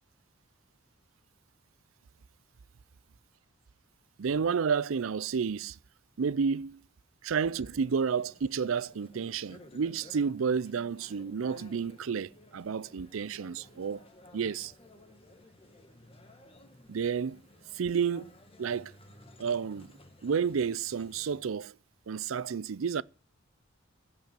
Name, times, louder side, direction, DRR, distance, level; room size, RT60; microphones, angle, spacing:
voice 1, 4.2-5.8 6.2-6.8 7.2-14.0 14.3-14.7 16.9-17.4 17.7-18.3 18.6-18.9 19.4-19.9 20.2-21.7 22.1-23.0, right 6 dB, 85° right, 0.5 m, -31 dB
sound 1, 7.3-21.4, left 1 dB, 30° left, 1.6 m, -56 dB
15.5 x 5.5 x 7.6 m
head